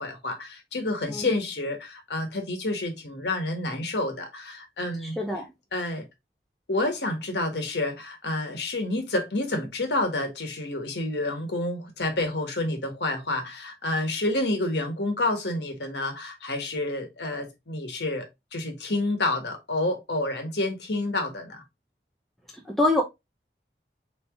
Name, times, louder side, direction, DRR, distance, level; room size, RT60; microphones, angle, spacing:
voice 1, 0.0-5.2 5.7-6.0 6.7-21.6, left 2 dB, 80° left, 1.3 m, -29 dB
voice 2, 5.0-5.4 22.7-23.0, left 2 dB, ahead, 0.6 m, -24 dB
3.9 x 3.4 x 3.5 m
head